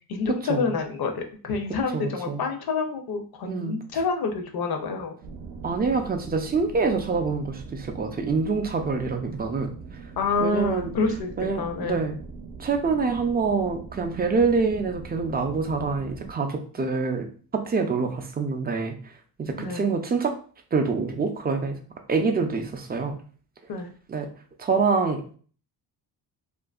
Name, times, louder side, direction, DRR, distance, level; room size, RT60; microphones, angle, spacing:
voice 1, 0.0-5.2 10.2-12.0 19.6-19.8 23.7-23.9, left 4 dB, 60° left, 4 dB, 0.6 m, -28 dB
voice 2, 1.9-2.4 3.5-3.8 5.6-9.8 10.4-10.9 11.4-12.2 12.6-17.3 17.5-18.9 19.4-20.3 20.7-21.7 22.1-23.2 24.1-24.3 24.6-25.4, right 4 dB, 25° right, 4 dB, 0.4 m, -26 dB
sound 1, 5.2-16.3, right 4 dB, 70° right, 0.6 m, -41 dB
2.7 x 2.5 x 2.3 m, 0.42 s
cardioid pair, 105°, 41 cm